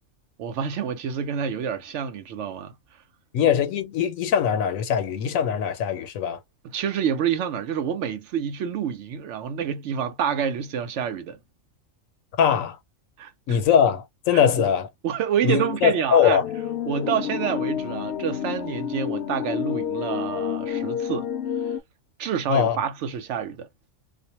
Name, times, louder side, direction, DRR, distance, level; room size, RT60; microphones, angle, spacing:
voice 1, 0.4-2.8 6.6-11.4 13.2-13.6 14.3-14.7 15.0-16.4 16.9-21.3 22.2-23.7, right 8 dB, 65° right, 0.9 m, -28 dB
voice 2, 3.3-6.4 12.4-12.8 13.5-14.9 15.4-16.4 22.5-22.8, left 8 dB, 85° left, 1.0 m, -21 dB
sound 1, 16.4-21.8, left 9 dB, 65° left, 0.7 m, -29 dB
2.5 x 2.1 x 2.8 m
omnidirectional pair, 1.4 m